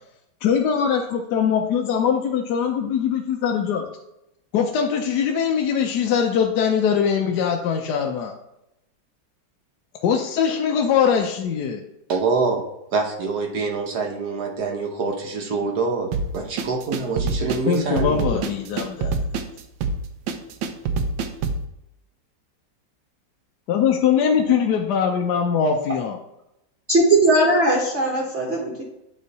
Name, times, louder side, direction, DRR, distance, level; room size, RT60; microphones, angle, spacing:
voice 1, 0.4-3.8 4.5-8.3 10.0-11.8 17.7-19.2 23.7-26.2, left 7 dB, 70° left, 2 dB, 1.1 m, -22 dB
voice 2, 12.1-12.6 12.9-16.1 16.3-18.5, right 4 dB, 60° right, 2 dB, 1.4 m, -25 dB
sound 1, 16.1-21.7, right 4 dB, 85° right, 1.4 m, -26 dB
voice 3, 26.9-28.8, right 2 dB, 40° right, -5 dB, 1.3 m, -19 dB
9.3 x 3.1 x 4.0 m, 0.85 s
omnidirectional pair, 2.0 m